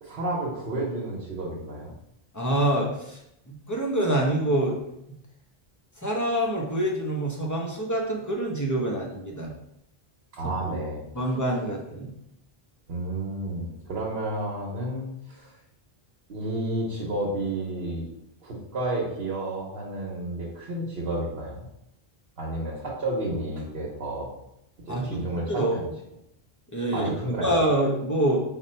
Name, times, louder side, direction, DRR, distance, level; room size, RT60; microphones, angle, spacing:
voice 1, 0.0-1.9 10.3-11.0 12.9-15.5 16.3-18.0 18.4-21.7 22.4-24.3 24.8-25.9 26.9-27.5, right 1 dB, 70° right, -4 dB, 1.1 m, -31 dB
voice 2, 2.3-3.2 3.5-4.8 6.0-9.5 11.1-12.1 24.9-25.2 25.5-25.9 26.7-27.1 27.4-28.4, right 1 dB, 20° left, -2 dB, 0.7 m, -26 dB
5.2 x 2.2 x 4.3 m, 0.81 s
omnidirectional pair, 1.0 m